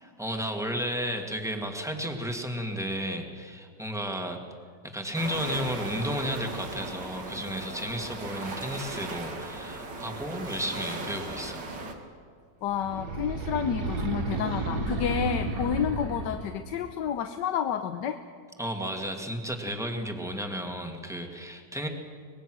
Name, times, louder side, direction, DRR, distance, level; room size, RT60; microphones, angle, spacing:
voice 1, 0.0-4.4 4.9-11.7 18.6-21.9, equal, ahead, 2 dB, 1.9 m, -33 dB
sound 1, 5.1-11.9, right 3 dB, 85° right, 2.7 m, -37 dB
voice 2, 12.6-18.2, left 8 dB, 85° left, 8 dB, 1.5 m, -30 dB
sound 2, 12.7-16.7, right 2 dB, 65° right, 2.1 m, -32 dB
24.5 x 20.5 x 6.2 m, 2.2 s
omnidirectional pair, 1.9 m